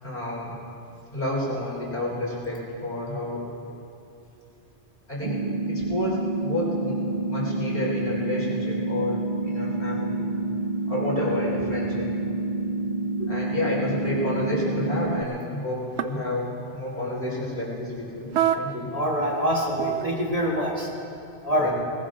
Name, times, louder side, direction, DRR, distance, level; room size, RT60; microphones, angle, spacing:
voice 1, 0.0-0.5 1.1-3.4 5.1-7.0 7.3-10.2 10.9-12.1 13.2-18.3 18.5-18.9 21.5-21.7, left 1 dB, 50° left, -5 dB, 4.1 m, -30 dB
sound 1, 5.2-15.2, right 2 dB, 65° right, 0.3 m, -28 dB
sound 2, 14.2-14.3 14.9-15.3 16.0-16.4 18.3-18.9 19.2-20.0, right 11 dB, 80° right, 1.0 m, -26 dB
voice 2, 18.9-20.9 21.4-21.7, equal, 30° right, -3 dB, 1.8 m, -25 dB
19.5 x 17.5 x 3.8 m, 2.7 s
omnidirectional pair, 1.2 m